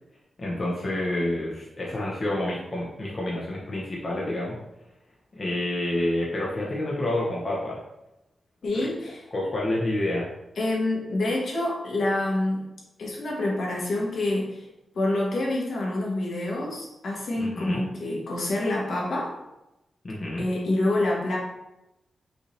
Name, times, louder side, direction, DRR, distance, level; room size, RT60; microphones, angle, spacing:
voice 1, 0.4-4.6 5.4-7.8 8.7-8.9 9.3-10.3 17.4-17.8 20.0-20.4, left 1 dB, 35° left, -4 dB, 0.7 m, -28 dB
voice 2, 8.6-9.5 10.6-12.7 13.0-14.7 14.9-19.3 20.4-21.4, left 1 dB, 70° left, -3 dB, 1.3 m, -27 dB
5.2 x 2.7 x 3.1 m, 0.92 s
wide cardioid pair, 155°, 0 cm